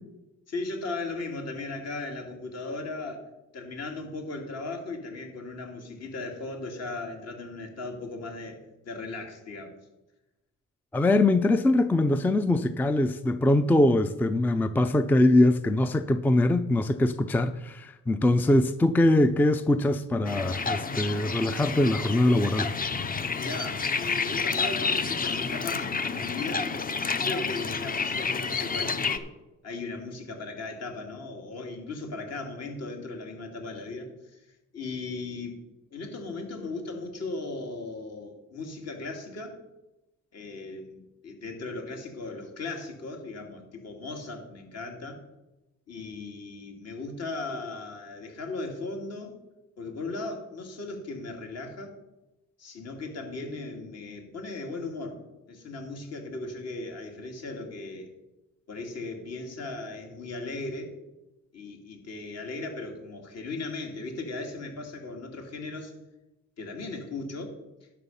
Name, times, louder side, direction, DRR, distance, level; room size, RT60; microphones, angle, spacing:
voice 1, 0.5-3.3 3.5-9.7 23.3-26.7 27.2-29.3 29.6-35.6 35.9-39.6 40.3-45.2 45.9-49.4 49.8-52.0 52.6-55.2 55.5-58.1 58.7-61.0 61.5-65.9 66.6-67.6, left 3 dB, 55° left, 2.6 m, -37 dB
voice 2, 10.9-22.7, left 1 dB, 5° left, 0.4 m, -22 dB
sound 1, 20.2-29.2, left 4 dB, 30° left, 0.8 m, -30 dB
11.0 x 6.4 x 5.5 m
cardioid pair, 90°, 30 cm